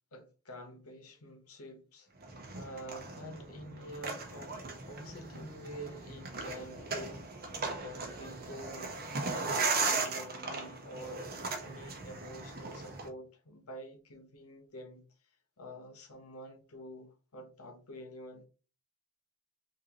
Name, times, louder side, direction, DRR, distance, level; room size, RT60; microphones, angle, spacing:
voice 1, 0.1-4.6 4.9-15.0 15.6-18.5, equal, 90° left, 1.2 m, -48 dB
sound 1, 2.2-13.1, right 4 dB, 45° right, 1.1 m, -37 dB
5.8 x 2.9 x 2.9 m
head